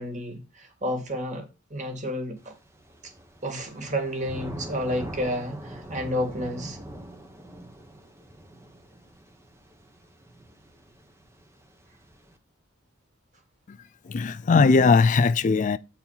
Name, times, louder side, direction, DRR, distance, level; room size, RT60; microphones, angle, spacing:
voice 1, 0.0-2.5 3.4-6.8, equal, 35° right, 2.1 m, -31 dB
Thunder / Rain, 2.4-12.3, right 1 dB, 15° right, 1.1 m, -43 dB
voice 2, 14.0-15.8, left 4 dB, 40° left, 0.3 m, -19 dB
8.6 x 4.5 x 5.6 m
head